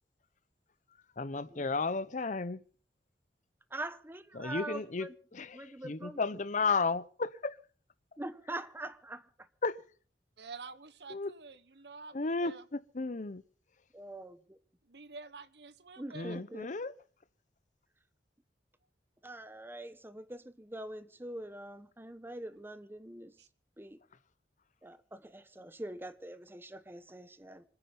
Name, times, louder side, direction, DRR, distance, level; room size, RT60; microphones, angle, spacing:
voice 1, 1.2-2.6 4.3-7.6 9.6-9.8 11.1-11.3 12.1-13.4 16.1-16.9, left 4 dB, 45° left, 0.8 m, -33 dB
voice 2, 3.7-5.1 5.5-6.2 8.2-9.5 13.9-14.6 16.0-16.7 19.2-23.3 23.8-24.0 24.8-27.6, right 1 dB, 15° right, 1.1 m, -44 dB
voice 3, 4.4-4.9 10.4-12.6 14.8-16.4 23.4-23.5, right 4 dB, 70° right, 1.3 m, -49 dB
26.0 x 9.9 x 5.4 m
head